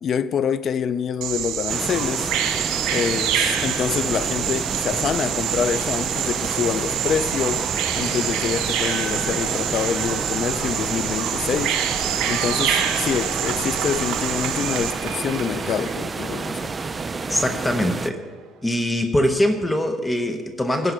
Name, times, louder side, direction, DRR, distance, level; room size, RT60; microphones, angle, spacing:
voice 1, 0.0-2.3 2.9-11.8 12.3-16.7, left 7 dB, 45° left, 0.5 m, -26 dB
Bird vocalization bird call bird song, 1.2-14.9, right 9 dB, 90° right, 1.4 m, -26 dB
sound 1, 1.7-18.1, right 4 dB, 20° right, 0.4 m, -30 dB
Cheering / Applause / Crowd, 3.9-18.6, right 8 dB, 70° right, 1.1 m, -36 dB
voice 2, 17.3-18.2 18.6-20.9, left 1 dB, 10° left, 0.8 m, -22 dB
15.5 x 5.4 x 8.1 m
cardioid pair, 135°, 0 cm